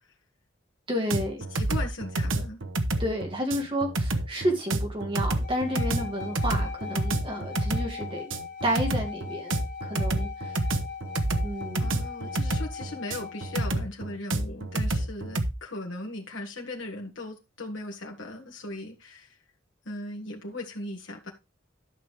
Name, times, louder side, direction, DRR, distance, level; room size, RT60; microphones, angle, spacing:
voice 1, 0.9-1.4 3.0-8.3 8.6-10.5 11.4-11.9 12.2-12.3, equal, 25° right, 2.3 m, -31 dB
sound 1, 1.1-15.5, right 2 dB, 75° right, 1.1 m, -28 dB
voice 2, 1.5-2.6 11.7-19.4 19.9-21.3, left 2 dB, 70° left, 1.7 m, -38 dB
sound 2, 5.4-13.7, left 7 dB, 40° left, 2.7 m, -40 dB
12.0 x 6.1 x 3.4 m
head